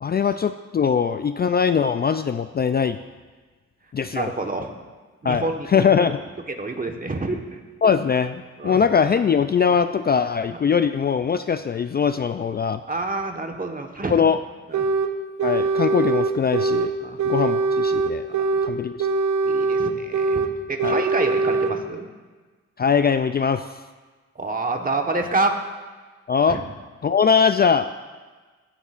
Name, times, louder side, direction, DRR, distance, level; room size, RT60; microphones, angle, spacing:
voice 1, 0.0-3.0 3.9-4.3 5.2-6.2 7.8-12.8 14.1-14.4 15.4-16.9 17.2-18.2 18.6-19.1 20.8-21.0 22.8-23.7 26.3-26.6 27.0-27.9, left 6 dB, 35° left, 10 dB, 0.4 m, -21 dB
voice 2, 4.1-4.7 5.2-5.7 6.6-7.4 8.6-8.8 10.5-10.6 12.9-14.1 14.7-14.9 17.0-17.2 18.3-18.6 19.4-22.1 24.3-25.5 26.5-26.6, right 3 dB, 30° right, 4 dB, 1.3 m, -27 dB
sound 1, 14.7-15.1 15.4-16.9 17.2-18.7 19.0-20.5 20.8-21.7, right 4 dB, 75° right, 0.7 m, -22 dB
16.0 x 9.9 x 2.5 m, 1.4 s
cardioid pair, 75°, 29 cm